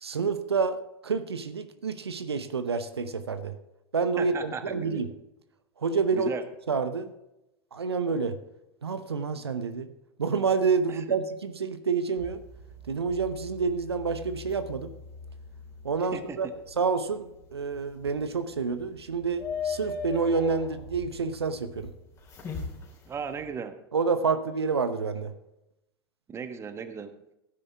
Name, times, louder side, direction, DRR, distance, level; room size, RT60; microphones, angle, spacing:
voice 1, 0.0-3.5 3.9-5.1 5.8-6.3 6.7-7.1 7.7-8.4 8.8-9.9 10.2-12.4 12.9-14.9 15.8-16.5 16.8-21.9 23.9-25.3, right 5 dB, 75° right, 10 dB, 0.9 m, -28 dB
voice 2, 4.2-5.0 6.1-6.4 10.9-11.0 16.1-16.5 23.1-23.8 26.3-27.2, right 6 dB, 20° right, 9 dB, 1.2 m, -36 dB
sound 1, 12.2-23.5, left 4 dB, 20° left, 3.4 m, -41 dB
16.0 x 9.9 x 3.5 m, 0.88 s
figure-of-eight pair, 90°, 14 cm